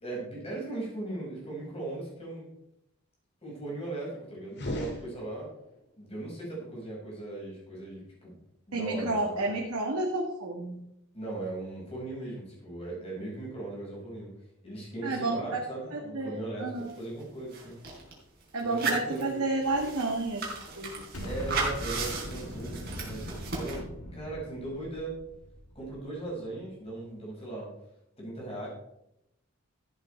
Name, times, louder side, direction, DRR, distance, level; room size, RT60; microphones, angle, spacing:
voice 1, 0.0-2.4 3.4-5.5 6.0-8.4 8.7-9.4 11.1-14.3 14.6-17.8 18.6-19.6 21.2-23.9 24.1-25.2 25.8-27.7 28.2-28.7, right 2 dB, 25° left, -4 dB, 5.2 m, -38 dB
sound 1, 4.5-5.8, left 1 dB, 50° left, 2.3 m, -37 dB
voice 2, 8.7-10.9 15.0-15.4 15.9-16.9 18.5-20.4 20.8-21.3, right 2 dB, 90° right, -1 dB, 1.7 m, -31 dB
sound 2, 16.9-17.0 17.2-18.1 18.6-23.7, right 4 dB, 45° right, 3.6 m, -35 dB
Explosion, 21.1-26.3, equal, 85° left, 2.2 m, -41 dB
13.5 x 8.2 x 4.4 m, 0.82 s
head